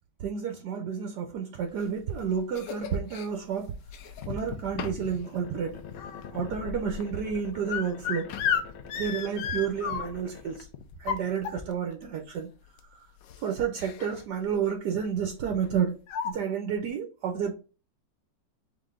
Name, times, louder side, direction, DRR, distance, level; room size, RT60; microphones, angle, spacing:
voice 1, 0.2-3.7 4.3-5.8 6.3-8.3 9.0-10.7 11.0-12.5 13.4-15.9 16.2-17.5, right 7 dB, 70° right, 1.3 m, -30 dB
sound 1, 1.8-3.3 3.9-4.4 4.8-5.2 5.5-10.4 10.9-11.9 12.8-12.9 13.2-13.4 13.8-14.2 14.5-14.7 15.6-15.7 16.1-16.3, left 7 dB, 90° left, 1.4 m, -34 dB
sound 2, 4.2-11.6, left 7 dB, 70° left, 0.6 m, -43 dB
3.9 x 3.5 x 3.6 m
omnidirectional pair, 1.9 m